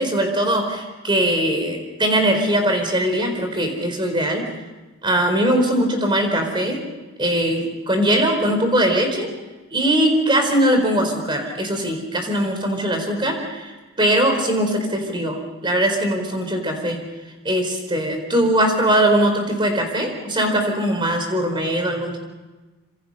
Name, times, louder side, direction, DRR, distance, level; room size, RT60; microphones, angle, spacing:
voice 1, 0.0-4.4 5.0-6.8 7.2-9.3 9.7-17.0 17.4-22.2, right 1 dB, 25° right, 4 dB, 4.4 m, -21 dB
26.5 x 26.5 x 5.7 m, 1.2 s
head